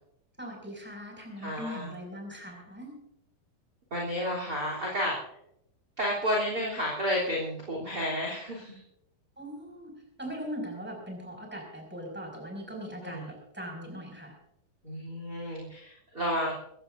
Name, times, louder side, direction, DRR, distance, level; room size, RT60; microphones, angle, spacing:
voice 1, 0.4-3.0 9.4-9.9 10.2-14.3, equal, 5° right, 1 dB, 5.6 m, -40 dB
voice 2, 1.4-1.9 3.9-5.2 6.0-8.8 13.0-13.3 14.8-16.5, equal, 30° right, -3 dB, 3.7 m, -31 dB
23.0 x 16.5 x 2.6 m, 0.76 s
omnidirectional pair, 4.0 m